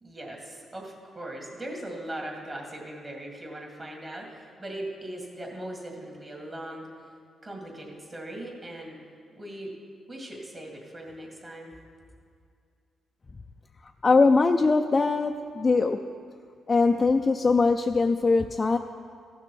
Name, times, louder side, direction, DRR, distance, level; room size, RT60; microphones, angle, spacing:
voice 1, 0.0-6.9 7.4-9.0 9.4-9.7 10.1-11.7, right 1 dB, 30° right, 0 dB, 2.1 m, -39 dB
voice 2, 14.0-16.0 16.7-18.8, left 3 dB, 30° left, 5 dB, 0.3 m, -21 dB
15.0 x 6.1 x 4.5 m, 2.3 s
cardioid pair, 95°, 0 cm